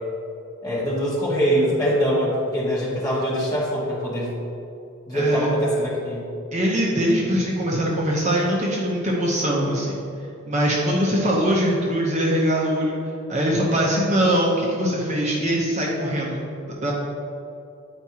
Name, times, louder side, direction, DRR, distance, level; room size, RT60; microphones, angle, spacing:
voice 1, 0.6-4.3 5.1-6.3, equal, 15° left, -7 dB, 1.4 m, -23 dB
voice 2, 5.1-5.5 6.5-10.0 10.5-13.0 13.3-16.4 16.8-16.9, equal, 30° right, -3 dB, 0.7 m, -22 dB
8.9 x 4.6 x 2.8 m, 2.7 s
head